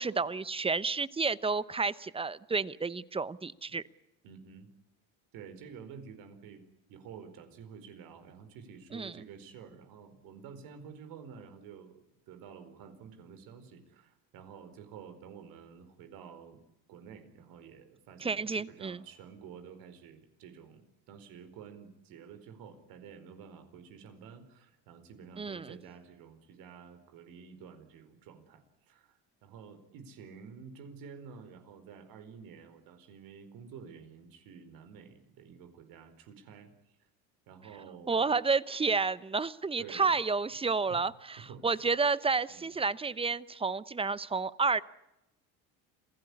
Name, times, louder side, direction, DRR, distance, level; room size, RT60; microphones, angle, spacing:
voice 1, 0.0-3.8 8.9-9.2 18.2-19.0 25.4-25.7 38.1-44.8, right 4 dB, 15° right, 18 dB, 0.9 m, -30 dB
voice 2, 4.2-4.7 5.3-6.6 6.9-16.6 16.9-37.0 37.5-38.3 39.8-40.2 40.9-41.0 41.4-41.9 42.5-42.8, right 6 dB, 70° right, 9 dB, 4.6 m, -50 dB
27.5 x 17.0 x 9.9 m, 0.88 s
supercardioid pair, 105°, 36 cm